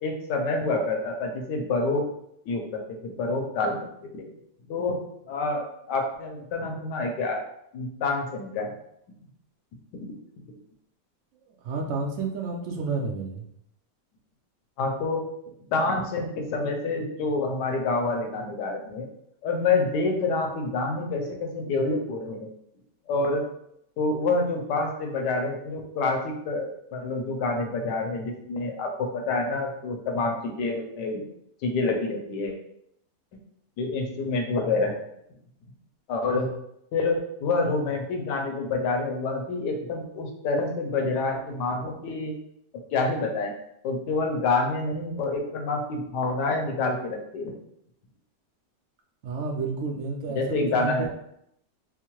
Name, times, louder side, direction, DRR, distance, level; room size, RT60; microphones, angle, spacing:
voice 1, 0.0-2.0 2.4-3.8 4.1-4.3 4.7-5.0 5.3-7.4 7.7-8.7 9.9-10.1 14.8-15.2 15.7-19.1 19.4-22.5 23.1-23.4 24.0-31.3 31.6-32.6 33.8-35.0 36.1-36.5 36.9-42.3 42.9-43.5 43.8-47.5 50.3-51.1, left 3 dB, 80° left, 2 dB, 1.3 m, -27 dB
voice 2, 11.6-13.4 36.3-36.5 49.2-51.1, right 4 dB, 65° right, 1 dB, 0.8 m, -31 dB
4.5 x 2.1 x 2.9 m, 0.74 s
omnidirectional pair, 1.9 m